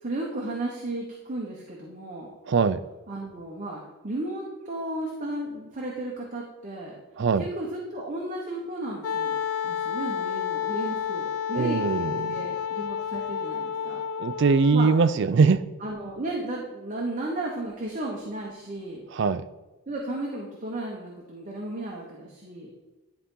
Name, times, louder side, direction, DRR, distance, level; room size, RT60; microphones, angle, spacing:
voice 1, 0.0-2.3 3.1-7.0 7.3-9.4 9.6-14.0 14.7-14.9 15.8-19.0 19.9-22.7, right 1 dB, 35° right, -2 dB, 1.0 m, -34 dB
voice 2, 2.5-2.8 7.2-7.4 11.5-12.3 14.2-15.6 19.1-19.4, right 4 dB, 55° right, 13 dB, 0.4 m, -21 dB
Wind instrument woodwind instrument, 9.0-15.0, left 8 dB, 75° left, 0.3 m, -30 dB
11.0 x 4.1 x 3.8 m, 1.1 s
head